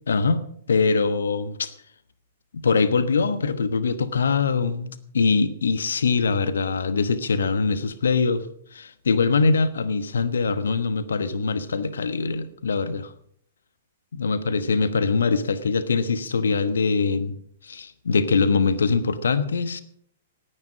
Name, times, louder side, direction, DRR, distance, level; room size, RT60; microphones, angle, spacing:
voice 1, 0.1-1.7 2.5-8.5 8.7-13.1 14.1-17.4 17.6-19.8, left 4 dB, 65° left, 14 dB, 1.2 m, -23 dB
18.0 x 10.0 x 6.2 m, 0.66 s
figure-of-eight pair, 110°, 0 cm